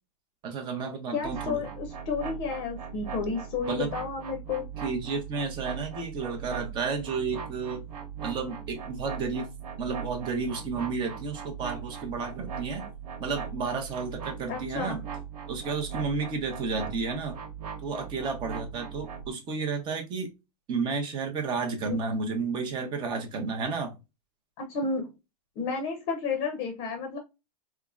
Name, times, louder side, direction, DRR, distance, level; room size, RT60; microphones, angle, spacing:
voice 1, 0.4-1.7 3.7-3.9 4.8-7.8 8.2-9.5 9.8-12.8 13.2-15.0 15.5-17.4 17.8-20.3 20.7-24.0, right 4 dB, 25° right, 0.7 m, -32 dB
voice 2, 1.1-4.6 14.5-15.0 21.8-21.9 24.6-25.1 25.6-27.2, left 5 dB, 35° left, 0.7 m, -31 dB
sound 1, 1.2-19.3, right 7 dB, 80° right, 1.1 m, -39 dB
3.4 x 2.0 x 2.3 m
hypercardioid pair, 145°, 20 cm